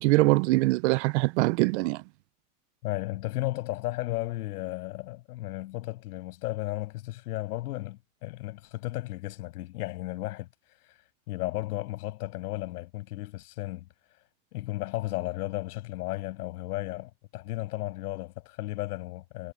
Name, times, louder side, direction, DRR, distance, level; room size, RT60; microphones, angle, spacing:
voice 1, 0.0-2.0, right 21 dB, 50° right, 0.5 m, -23 dB
voice 2, 2.8-10.5 11.3-13.9 14.5-19.5, left 17 dB, 75° left, 7.8 m, -34 dB
supercardioid pair, 165°, 46 cm